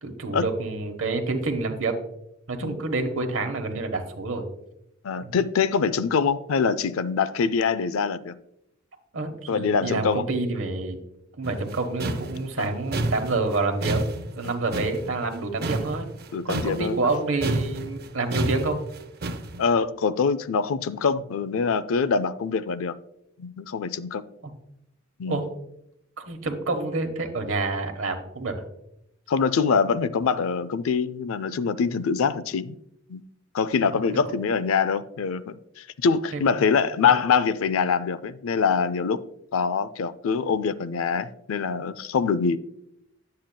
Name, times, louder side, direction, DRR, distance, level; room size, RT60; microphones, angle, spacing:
voice 1, 0.0-2.0 2.5-4.5 5.2-5.4 9.1-11.0 11.4-16.1 16.4-18.8 25.3-25.4 26.2-28.6 33.9-34.0 36.3-36.4, right 3 dB, 70° right, 1.1 m, -28 dB
voice 2, 5.0-8.4 9.5-10.3 12.6-12.7 14.4-14.5 16.3-17.0 19.6-23.0 23.4-24.2 25.2-25.5 29.3-32.7 33.1-33.2 33.5-39.2 39.5-42.6, left 5 dB, 85° left, 0.4 m, -24 dB
sound 1, 11.4-17.2 17.4-19.6, right 2 dB, 50° right, 0.6 m, -30 dB
10.5 x 7.6 x 2.2 m
head